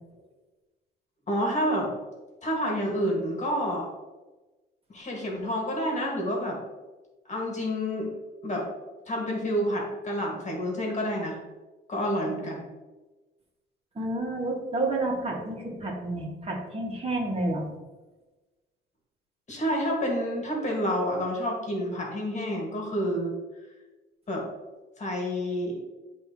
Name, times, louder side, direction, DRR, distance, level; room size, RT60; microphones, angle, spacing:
voice 1, 1.3-1.9 2.4-3.9 4.9-6.6 7.3-8.1 8.4-8.7 9.1-11.4 11.9-12.6 19.5-23.3 24.3-24.5 25.0-25.8, equal, 35° left, -1 dB, 2.0 m, -29 dB
voice 2, 13.9-17.7, right 2 dB, 30° right, -2 dB, 2.2 m, -30 dB
10.5 x 3.5 x 3.1 m, 1.2 s
cardioid pair, 90°, 20 cm